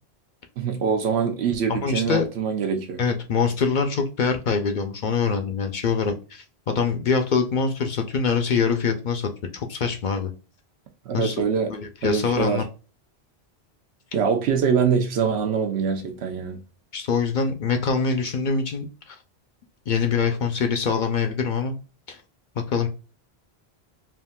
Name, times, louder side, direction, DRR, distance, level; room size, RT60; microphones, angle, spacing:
voice 1, 0.6-3.0 11.1-11.7 12.0-12.6 14.1-16.6, right 6 dB, 90° right, 0.9 m, -24 dB
voice 2, 1.7-2.3 3.0-10.3 11.1-11.4 11.7-12.6 16.9-19.2 19.9-21.8 22.1-22.2 22.6-22.9, left 5 dB, 60° left, 0.6 m, -24 dB
3.5 x 2.4 x 2.2 m
omnidirectional pair, 1.1 m